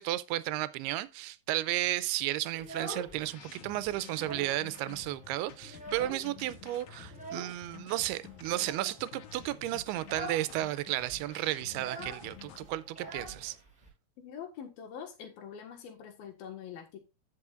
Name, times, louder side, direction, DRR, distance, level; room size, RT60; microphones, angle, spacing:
voice 1, 0.0-13.6, right 15 dB, 85° right, 2.6 m, -33 dB
Child speech kid speaking, 2.5-3.5 3.8-4.6 4.9-5.0 5.4-6.5 7.1-7.6 8.5-9.0 9.4-9.6 10.0-10.5 10.8-10.9 11.1-13.9, right 2 dB, ahead, 4.7 m, -44 dB
sound 1, 2.6-13.6, right 2 dB, 45° right, 4.4 m, -60 dB
sound 2, 3.1-12.7, left 10 dB, 90° left, 1.6 m, -51 dB
voice 2, 14.2-17.0, left 8 dB, 70° left, 3.2 m, -44 dB
14.0 x 6.3 x 2.5 m
omnidirectional pair, 4.5 m